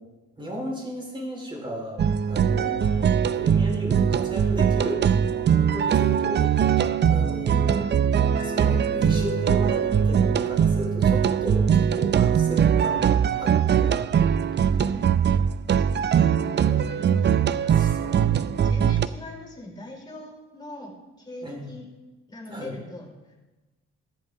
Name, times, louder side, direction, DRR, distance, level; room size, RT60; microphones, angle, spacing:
voice 1, 0.4-6.4 6.7-7.9 8.4-14.1 17.8-18.4 21.4-21.7 22.5-22.7, right 1 dB, 15° right, -1 dB, 4.3 m, -35 dB
sound 1, 2.0-19.1, right 8 dB, 35° right, 0.5 m, -21 dB
voice 2, 2.6-3.0 5.9-6.2 12.4-12.7 14.6-15.1 15.7-21.9 22.3-23.4, left 1 dB, 15° left, 0 dB, 4.9 m, -42 dB
sound 2, 8.4-14.5, left 4 dB, 30° left, 1.9 m, -47 dB
14.5 x 11.0 x 3.7 m, 1.2 s
cardioid pair, 90°, 30 cm